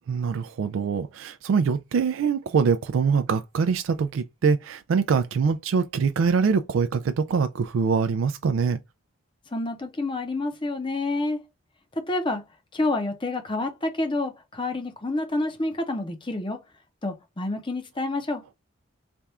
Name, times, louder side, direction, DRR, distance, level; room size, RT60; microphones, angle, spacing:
voice 1, 0.1-8.8, right 5 dB, 75° right, 0.3 m, -24 dB
voice 2, 9.5-11.4 12.0-12.4 12.7-16.6 17.0-18.4, left 2 dB, 25° left, 0.7 m, -28 dB
3.4 x 2.4 x 4.1 m
head